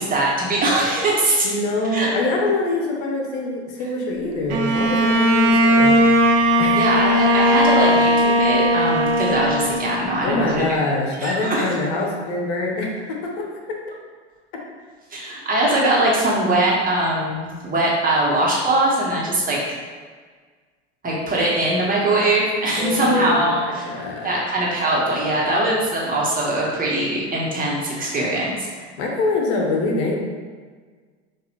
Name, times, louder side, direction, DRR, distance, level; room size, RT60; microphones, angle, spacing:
voice 1, 0.0-1.5 1.9-2.1 6.8-10.7 11.2-11.6 15.1-19.6 21.0-23.8 24.2-28.9, right 1 dB, 25° right, -5 dB, 1.3 m, -21 dB
voice 2, 1.4-5.9 6.6-6.9 10.2-13.8 22.8-24.4 29.0-30.2, left 2 dB, 65° left, 0 dB, 1.0 m, -24 dB
Bowed string instrument, 4.5-10.3, equal, 70° right, 0.7 m, -17 dB
6.3 x 2.6 x 3.0 m, 1.5 s
hypercardioid pair, 100°, 35 cm